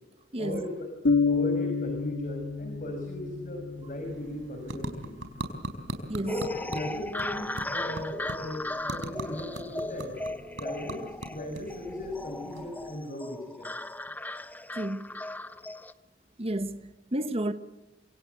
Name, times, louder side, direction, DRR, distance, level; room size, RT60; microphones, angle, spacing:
voice 1, 0.4-0.9 1.3-5.2 6.2-10.1 10.6-13.7, left 1 dB, 45° left, 5.5 m, -37 dB
sound 1, 1.0-4.8, left 4 dB, 75° left, 1.9 m, -29 dB
sound 2, 3.7-13.2, right 1 dB, 85° right, 4.6 m, -41 dB
voice 2, 6.1-6.4 14.7-15.1 16.4-17.5, right 1 dB, 35° right, 1.4 m, -31 dB
sound 3, 6.3-15.9, left 1 dB, 10° left, 0.9 m, -37 dB
27.0 x 25.0 x 8.0 m
head